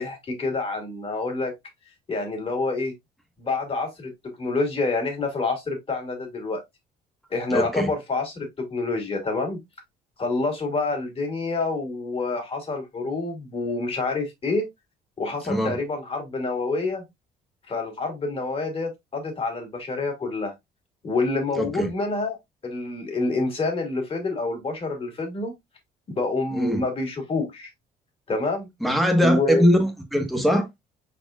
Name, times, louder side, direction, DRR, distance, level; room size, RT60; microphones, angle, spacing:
voice 1, 0.0-1.5 2.1-2.9 3.4-4.1 4.4-6.6 7.3-9.6 10.2-14.7 15.2-17.0 17.7-20.5 21.0-22.4 22.6-25.5 26.2-27.7 28.3-28.7 29.2-29.6, left 3 dB, 35° left, 2.3 m, -27 dB
voice 2, 7.5-7.9 15.5-15.7 21.6-21.9 26.5-26.8 28.8-30.7, equal, ahead, 1.3 m, -21 dB
4.9 x 4.3 x 2.4 m
cardioid pair, 110°, 17 cm